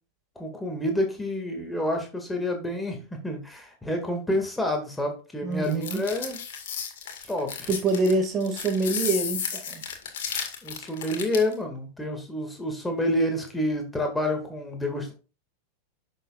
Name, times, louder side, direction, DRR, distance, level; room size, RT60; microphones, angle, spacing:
voice 1, 0.4-6.4 7.3-7.7 10.6-15.1, left 1 dB, 5° left, 2.2 m, -28 dB
voice 2, 5.4-6.0 7.7-9.8, right 3 dB, 25° right, 1.9 m, -25 dB
sound 1, 5.6-11.5, left 7 dB, 55° left, 1.9 m, -33 dB
10.5 x 6.6 x 2.5 m
figure-of-eight pair, 90°, 0 cm